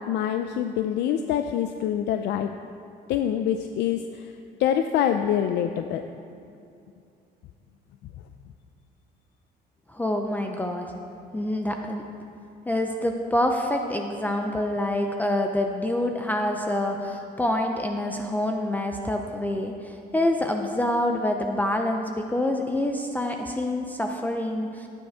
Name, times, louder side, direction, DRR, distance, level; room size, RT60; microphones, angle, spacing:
voice 1, 0.0-2.5 3.1-4.3 4.6-6.0, left 9 dB, 75° left, 7 dB, 0.5 m, -25 dB
voice 2, 9.9-10.9 11.3-12.0 12.7-24.9, left 1 dB, 10° left, 3 dB, 0.5 m, -26 dB
15.0 x 8.9 x 3.5 m, 2.6 s
cardioid pair, 145°, 17 cm